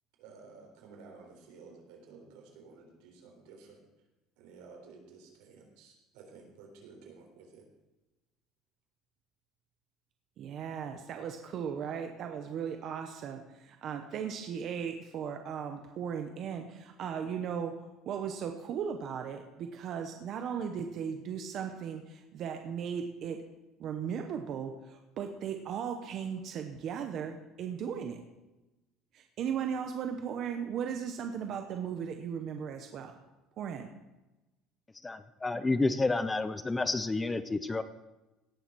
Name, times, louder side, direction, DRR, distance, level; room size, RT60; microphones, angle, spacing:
voice 1, 0.2-3.8 4.4-7.7, right 4 dB, 80° right, 2 dB, 3.8 m, -53 dB
voice 2, 10.4-17.7 18.0-23.4 23.8-28.2 29.1-33.2 33.6-33.9, right 7 dB, 40° right, 5 dB, 1.0 m, -37 dB
voice 3, 35.0-37.8, left 3 dB, 10° left, 12 dB, 0.5 m, -30 dB
17.5 x 7.0 x 6.2 m, 1.0 s
cardioid pair, 175°, 0 cm